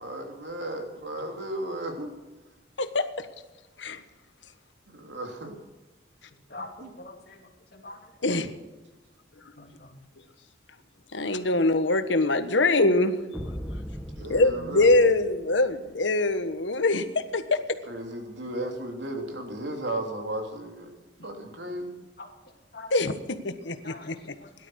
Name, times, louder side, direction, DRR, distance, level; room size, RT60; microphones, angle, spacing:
voice 1, 0.0-2.1 4.9-5.6 6.8-6.9 14.2-15.0 17.9-20.9 21.2-22.1, right 1 dB, 80° right, 3 dB, 3.2 m, -35 dB
voice 2, 2.8-3.3 3.8-4.0 8.2-8.5 11.1-13.1 14.2-17.8 22.9-24.3, left 2 dB, 90° left, 10 dB, 1.4 m, -24 dB
voice 3, 6.5-7.4 7.7-8.0 9.6-9.9 22.2-22.3 22.7-22.9 23.8-24.1 24.4-24.7, left 2 dB, 55° left, 2 dB, 2.8 m, -43 dB
sound 1, 13.3-15.9, equal, ahead, 1.0 m, -39 dB
17.5 x 12.0 x 6.4 m, 1.2 s
head